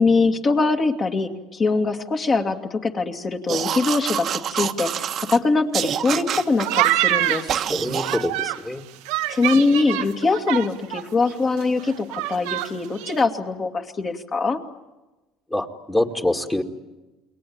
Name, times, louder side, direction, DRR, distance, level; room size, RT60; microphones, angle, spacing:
voice 1, 0.0-7.5 9.3-14.6, left 3 dB, 35° left, 4 dB, 2.5 m, -22 dB
sound 1, 3.5-5.4 5.7-6.9 7.5-8.3, right 9 dB, 45° right, 1.4 m, -27 dB
sound 2, 6.3-8.6 9.1-11.0 11.3-11.4 11.6-12.7 13.0-13.2, right 16 dB, 90° right, 1.5 m, -25 dB
voice 2, 7.7-8.8 15.5-16.6, left 1 dB, 10° left, 3 dB, 2.2 m, -25 dB
29.0 x 22.0 x 8.9 m, 1.1 s
cardioid pair, 115°, 0 cm